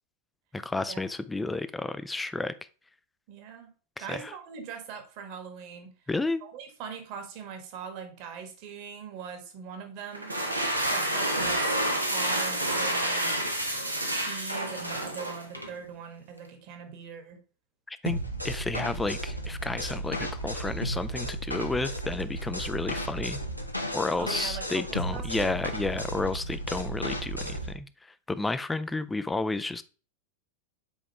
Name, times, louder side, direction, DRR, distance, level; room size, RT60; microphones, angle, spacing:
voice 1, 0.5-2.5 4.0-4.3 6.1-6.4 17.9-18.2 18.4-23.4 23.9-27.9 28.3-29.8, left 3 dB, 10° left, 13 dB, 0.5 m, -31 dB
voice 2, 3.3-3.7 4.0-5.9 6.4-10.4 10.9-11.8 12.0-13.4 14.1-17.4 24.2-25.6, right 7 dB, 45° right, 6 dB, 1.7 m, -41 dB
sound 1, 10.1-15.7, right 1 dB, 85° right, 1.2 m, -29 dB
sound 2, 18.1-27.7, right 1 dB, 90° left, 0.9 m, -34 dB
7.2 x 4.8 x 3.4 m, 0.37 s
figure-of-eight pair, 90°, 0 cm